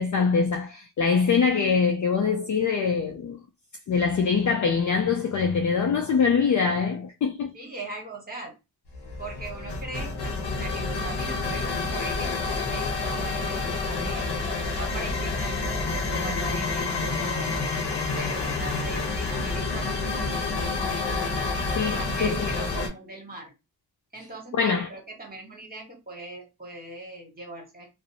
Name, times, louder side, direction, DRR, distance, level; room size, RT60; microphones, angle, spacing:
voice 1, 0.0-3.4 3.9-7.6 21.7-22.5 24.6-24.9, left 5 dB, 50° left, 0.5 m, -24 dB
voice 2, 7.5-8.5 9.2-14.4 14.8-17.6 18.1-20.3 21.9-23.5 24.1-27.9, right 2 dB, 25° right, 1.4 m, -40 dB
sound 1, 8.9-22.9, left 3 dB, 85° left, 0.8 m, -28 dB
2.5 x 2.0 x 2.7 m
cardioid pair, 50°, 39 cm